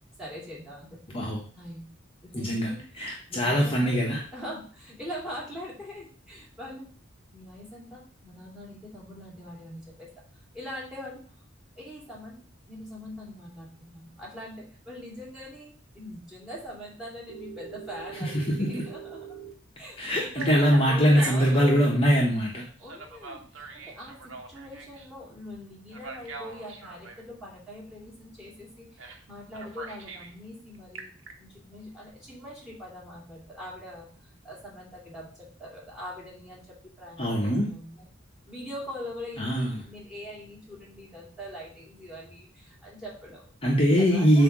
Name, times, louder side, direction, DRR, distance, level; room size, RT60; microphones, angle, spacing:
voice 1, 0.2-1.2 1.5-1.9 2.2-2.8 3.3-4.0 4.3-6.8 7.3-10.1 10.5-11.2 11.8-12.4 12.7-19.4 19.8-22.2 22.8-34.1 34.4-38.0 38.5-43.5 44.0-44.4, equal, 5° right, -3 dB, 2.5 m, -42 dB
voice 2, 2.3-2.7 3.0-4.2 18.2-18.8 20.0-22.6 37.2-37.7 39.4-39.8 43.6-44.4, equal, 30° left, -2 dB, 1.0 m, -22 dB
Telephone, 17.3-19.5 20.1-21.8 22.8-25.1 25.9-27.2 29.0-29.2 29.5-30.3 30.7-31.3, right 5 dB, 70° right, 1.2 m, -41 dB
7.7 x 2.8 x 6.0 m, 0.43 s
head